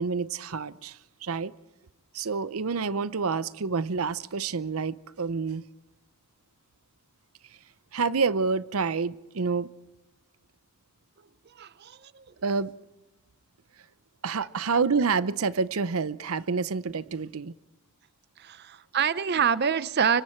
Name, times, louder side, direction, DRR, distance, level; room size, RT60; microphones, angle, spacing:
voice 1, 0.0-1.5 2.1-5.6 7.9-9.7 12.4-12.7 14.2-17.5, right 5 dB, 85° right, 17 dB, 0.7 m, -28 dB
voice 2, 11.6-12.2 18.4-20.2, right 7 dB, 50° right, 16 dB, 0.6 m, -26 dB
25.5 x 24.0 x 4.5 m, 1.0 s
head